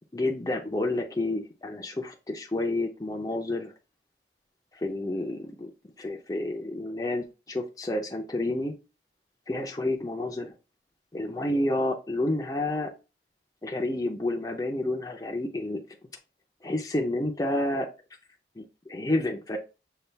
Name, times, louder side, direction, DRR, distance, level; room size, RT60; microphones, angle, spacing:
voice 1, 0.1-3.7 4.8-5.7 6.0-8.7 9.5-10.5 11.1-12.9 13.6-15.8 16.6-17.9 18.6-19.6, left 1 dB, 20° left, 1 dB, 0.6 m, -29 dB
6.8 x 2.4 x 3.3 m, 0.29 s
head